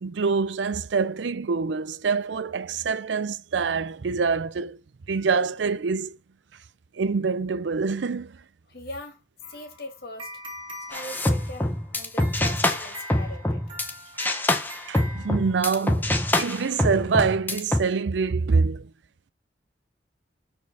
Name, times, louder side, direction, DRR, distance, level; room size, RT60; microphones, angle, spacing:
voice 1, 0.0-4.8 5.1-6.2 6.9-8.4 14.9-16.1 16.4-18.9, right 5 dB, 90° right, 0.5 m, -25 dB
voice 2, 8.7-9.2 9.5-10.3 10.9-13.6, left 1 dB, 60° left, 2.5 m, -40 dB
sound 1, 9.4-15.9, equal, 30° right, 2.2 m, -43 dB
sound 2, 10.9-13.9 14.2-17.8, left 1 dB, 10° left, 0.9 m, -25 dB
5.2 x 4.5 x 6.2 m
head